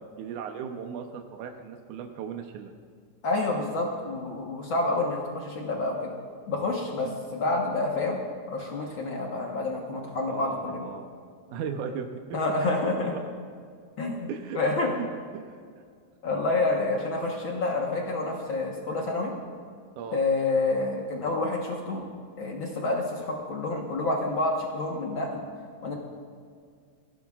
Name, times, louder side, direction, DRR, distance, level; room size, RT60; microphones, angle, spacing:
voice 1, 0.0-2.7 7.0-7.2 10.3-11.1 11.5-12.4 14.3-14.6 15.0-15.1 15.3-15.4 20.0-20.2, right 7 dB, 75° right, 4 dB, 2.0 m, -37 dB
voice 2, 3.2-6.2 6.5-8.2 8.5-10.9 12.3-13.1 14.0-14.3 14.5-14.9 16.2-19.3 20.1-22.0 22.4-25.5 25.8-25.9, left 2 dB, 80° left, -1 dB, 1.1 m, -28 dB
21.0 x 16.0 x 2.4 m, 2.1 s
omnidirectional pair, 4.0 m